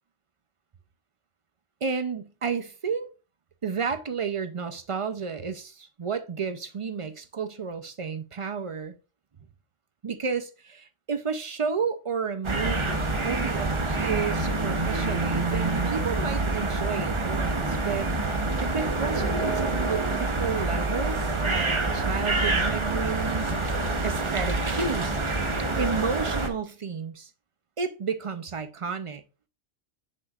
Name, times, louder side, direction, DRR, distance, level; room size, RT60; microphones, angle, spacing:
voice 1, 1.8-3.1 3.6-8.9 10.0-18.1 18.6-25.2 25.8-27.3 27.8-29.2, right 5 dB, 55° right, 0.3 m, -32 dB
sound 1, 12.4-26.5, right 2 dB, 30° right, 0.8 m, -27 dB
7.6 x 6.4 x 2.4 m
omnidirectional pair, 1.3 m